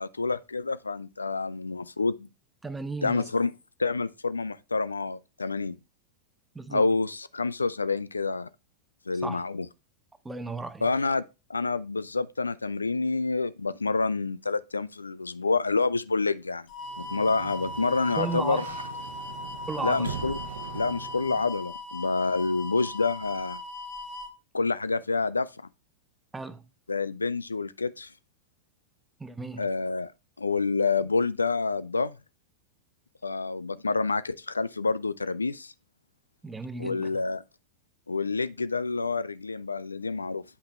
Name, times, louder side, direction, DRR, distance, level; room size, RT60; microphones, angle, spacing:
voice 1, 0.0-2.3 3.0-3.5 3.8-5.8 6.7-8.5 9.1-9.7 10.8-11.2 11.5-16.7 17.0-18.7 19.8-20.4 20.7-23.6 24.5-25.5 26.9-28.1 29.6-30.1 30.4-32.2 33.2-35.7 36.8-37.4 38.1-40.4, left 4 dB, 80° left, 0.3 m, -28 dB
voice 2, 2.6-3.2 6.5-6.9 9.2-9.4 10.2-10.9 18.2-18.6 19.7-20.1 26.3-26.6 29.2-29.7 36.4-37.1, right 3 dB, 10° right, 0.8 m, -34 dB
sound 1, 16.7-24.3, left 2 dB, 40° left, 1.4 m, -39 dB
Sliding door, 16.8-21.7, right 7 dB, 65° right, 0.8 m, -41 dB
8.7 x 5.6 x 3.2 m
figure-of-eight pair, 90°, 0 cm